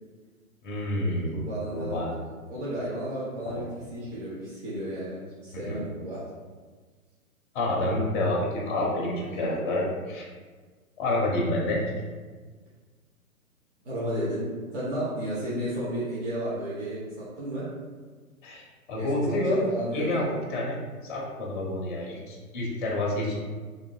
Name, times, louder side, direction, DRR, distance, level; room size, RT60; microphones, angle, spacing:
voice 1, 0.6-1.4 1.7-2.1 3.5-3.7 5.7-5.8 7.5-10.3 11.0-11.8 18.4-19.6 19.9-23.4, left 1 dB, 35° left, -2 dB, 0.6 m, -28 dB
voice 2, 1.3-2.1 2.5-3.6 3.9-6.2 13.8-17.6 18.9-20.2, right 1 dB, 50° right, -10 dB, 1.0 m, -33 dB
3.0 x 2.5 x 2.2 m, 1.4 s
figure-of-eight pair, 125°, 44 cm